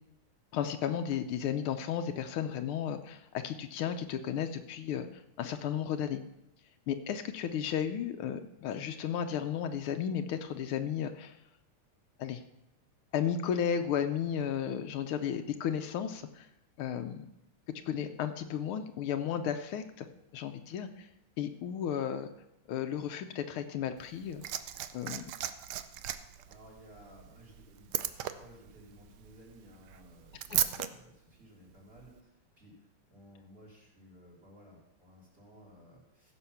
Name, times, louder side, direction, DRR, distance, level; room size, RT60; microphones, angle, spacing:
voice 1, 0.5-6.2 6.9-11.4 12.2-12.4 13.1-16.5 16.8-17.3 17.9-20.1 20.3-21.1 21.4-22.3 22.7-24.4 24.9-25.2 30.5-30.6, left 8 dB, 80° left, 8 dB, 1.6 m, -34 dB
Liquid, 24.0-30.9 32.0-32.1, right 12 dB, 70° right, 1.0 m, -37 dB
voice 2, 26.4-36.3, equal, 25° right, -2 dB, 4.1 m, -57 dB
15.5 x 6.8 x 5.8 m, 0.85 s
omnidirectional pair, 2.4 m